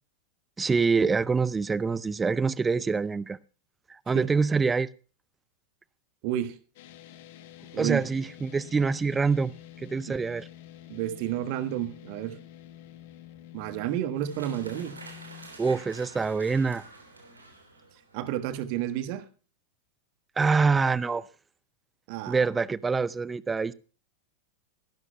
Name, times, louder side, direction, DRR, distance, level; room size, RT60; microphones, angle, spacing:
voice 1, 0.6-3.4 4.1-4.9 7.8-9.5 9.8-10.5 15.6-16.8 20.4-21.2 22.3-23.7, right 4 dB, 15° right, 0.6 m, -25 dB
voice 2, 6.2-6.6 7.7-8.1 10.9-12.4 13.5-15.0 18.1-19.2 22.1-22.4, right 12 dB, 45° right, 1.4 m, -31 dB
sound 1, 6.8-15.5, left 12 dB, 50° left, 1.3 m, -48 dB
sound 2, 14.2-18.3, right 3 dB, 80° right, 3.1 m, -47 dB
23.5 x 12.5 x 2.3 m
figure-of-eight pair, 90°, 0 cm